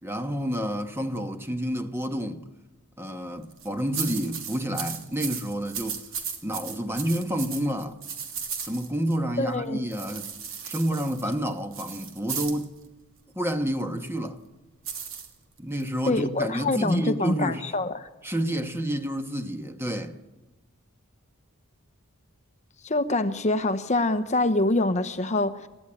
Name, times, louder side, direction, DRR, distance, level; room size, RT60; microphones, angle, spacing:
voice 1, 0.0-2.4 3.0-6.0 6.4-8.0 8.6-10.3 10.6-12.7 13.3-14.4 15.6-17.7 18.2-20.2, equal, 10° right, 1.3 m, -29 dB
sound 1, 3.4-3.7 3.9-9.2 9.9-12.6 14.8-15.9, right 7 dB, 65° right, 3.1 m, -35 dB
voice 2, 9.4-9.8 16.0-18.1 22.8-25.7, left 2 dB, 30° left, 0.9 m, -25 dB
29.0 x 15.0 x 10.0 m
head